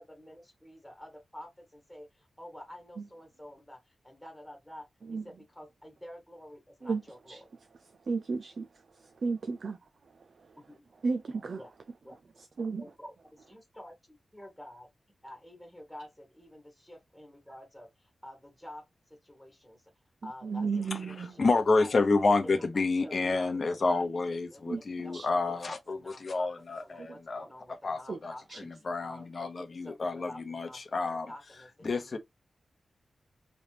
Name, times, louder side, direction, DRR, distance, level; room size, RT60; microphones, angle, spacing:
voice 1, 0.0-7.4 10.7-10.8 11.6-11.7 12.0-12.2 12.8-14.9 15.2-19.8 20.2-20.7 20.9-21.9 22.4-28.6 29.0-32.2, left 1 dB, 5° left, 1.5 m, -49 dB
voice 2, 7.7-10.6 11.0-11.6 12.4-12.8 20.2-21.4 24.7-25.3 27.0-27.1 28.1-28.2 28.5-28.6, right 4 dB, 55° right, 0.4 m, -35 dB
voice 3, 21.4-27.4 27.8-31.3 31.8-32.2, left 3 dB, 45° left, 0.9 m, -29 dB
4.0 x 3.3 x 2.8 m
wide cardioid pair, 120°, 0 cm